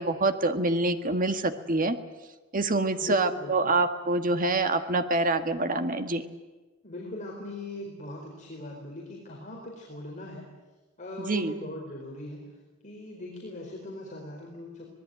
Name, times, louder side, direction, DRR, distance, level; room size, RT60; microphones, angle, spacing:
voice 1, 0.0-2.0 2.5-6.2 11.2-11.5, right 2 dB, 40° right, 8 dB, 1.6 m, -26 dB
voice 2, 3.0-3.7 6.8-10.5 11.0-12.4 12.8-14.9, left 1 dB, 40° left, -2 dB, 4.4 m, -40 dB
25.0 x 19.5 x 9.3 m, 1.2 s
head